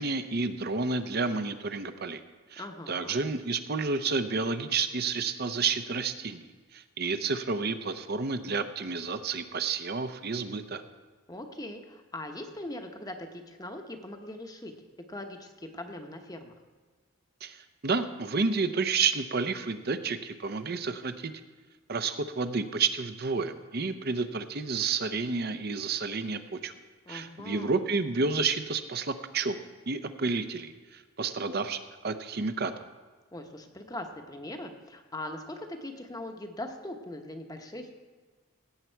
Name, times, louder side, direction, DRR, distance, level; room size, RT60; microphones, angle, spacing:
voice 1, 0.0-2.2 2.5-6.5 6.7-10.8 17.4-21.3 21.9-26.7 27.1-29.6 29.9-32.7, right 4 dB, 50° right, 10 dB, 0.7 m, -30 dB
voice 2, 2.6-3.2 11.3-14.7 15.1-16.5 27.1-27.7 33.3-37.9, left 1 dB, 20° left, 5 dB, 0.9 m, -41 dB
17.0 x 8.3 x 4.5 m, 1.4 s
head